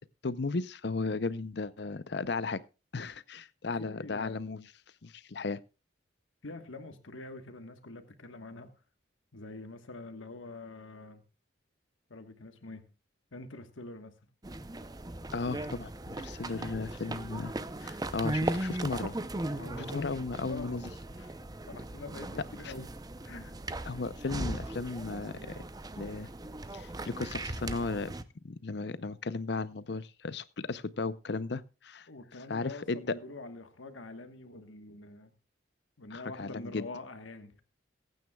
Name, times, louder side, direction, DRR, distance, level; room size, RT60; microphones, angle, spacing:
voice 1, 0.2-2.6 2.9-4.7 5.0-5.6 15.3-15.9 16.2-17.5 17.8-19.1 19.9-20.9 22.6-22.7 23.9-25.6 26.0-26.3 26.7-28.1 28.4-32.1 32.5-33.2 36.1-36.9, left 3 dB, 60° left, 0.6 m, -35 dB
voice 2, 3.9-4.4 6.4-8.7 9.3-11.2 12.1-12.8 13.3-14.1 16.5-16.9 19.5-20.8 21.2-21.4 21.7-22.9 23.2-23.6 32.1-35.3 36.0-37.6, left 2 dB, 85° left, 1.4 m, -45 dB
sound 1, 14.4-28.2, right 2 dB, 20° right, 0.6 m, -38 dB
22.5 x 9.3 x 2.3 m
head